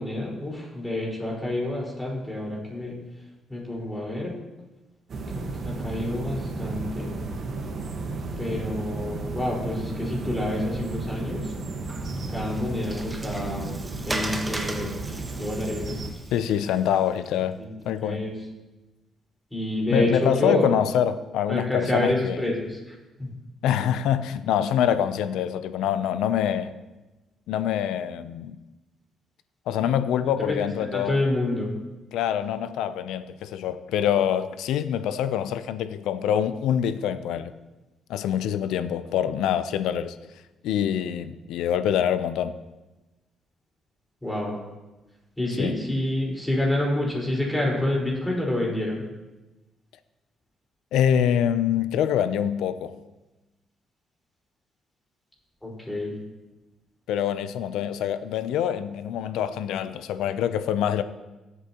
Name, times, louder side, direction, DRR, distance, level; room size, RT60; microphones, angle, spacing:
voice 1, 0.0-3.0 3.5-4.3 5.3-7.2 8.4-11.5 12.3-15.0 15.3-16.1 17.6-17.7 18.0-18.3 19.5-20.7 21.5-23.3 30.4-30.5 30.9-31.7 44.2-44.6 45.4-49.0 55.6-56.1, left 1 dB, 5° left, 4.6 m, -28 dB
sound 1, 5.1-16.1, right 3 dB, 50° right, 1.4 m, -33 dB
Water, 11.9-17.3, right 2 dB, 20° right, 1.1 m, -37 dB
voice 2, 16.3-17.6 17.8-18.3 19.9-22.4 23.6-26.7 27.5-28.6 29.7-31.2 32.1-37.5 38.1-40.2 40.6-42.5 45.6-45.7 50.9-52.9 57.1-61.0, left 9 dB, 90° left, 0.5 m, -25 dB
18.5 x 8.2 x 3.0 m
cardioid pair, 90°, 0 cm